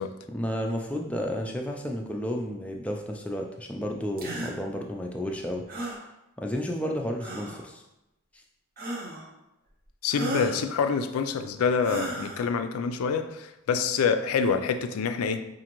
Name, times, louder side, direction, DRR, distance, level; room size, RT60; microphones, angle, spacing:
voice 1, 0.3-5.6 6.4-7.8, equal, 5° left, 1 dB, 0.3 m, -32 dB
sound 1, 4.2-4.6 5.7-6.0 7.2-7.7 8.8-9.3 10.1-10.6 11.8-12.5, right 2 dB, 45° right, 0.6 m, -34 dB
voice 2, 10.0-15.5, left 5 dB, 90° left, 9 dB, 0.4 m, -26 dB
4.8 x 2.5 x 2.9 m, 0.91 s
head